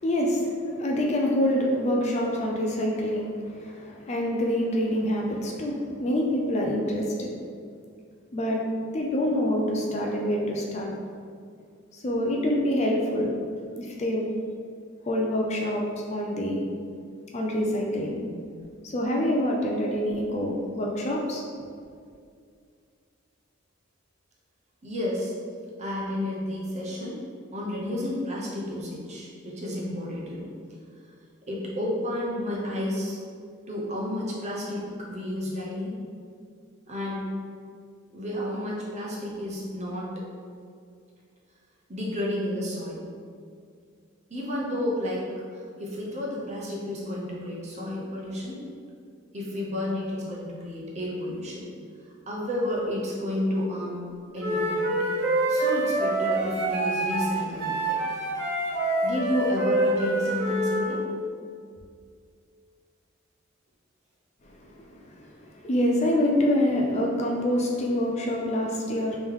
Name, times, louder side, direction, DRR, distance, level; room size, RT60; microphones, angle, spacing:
voice 1, 0.0-7.3 8.3-8.6 8.9-10.9 11.9-13.3 13.8-14.3 15.1-16.7 17.3-18.4 18.9-21.4 64.8-65.0 65.6-69.2, left 1 dB, 35° left, -1 dB, 0.4 m, -26 dB
voice 2, 24.8-25.3 25.8-27.2 27.5-30.5 31.5-33.2 33.7-36.0 36.9-37.3 38.1-40.1 41.9-43.0 44.3-48.6 49.3-51.7 52.3-54.0 54.3-54.9 55.5-58.0 59.0-61.0 64.9-65.0, left 1 dB, 35° right, -4 dB, 0.8 m, -31 dB
Wind instrument woodwind instrument, 54.4-60.8, right 2 dB, 55° right, 1.2 m, -26 dB
3.4 x 3.0 x 3.6 m, 2.2 s
head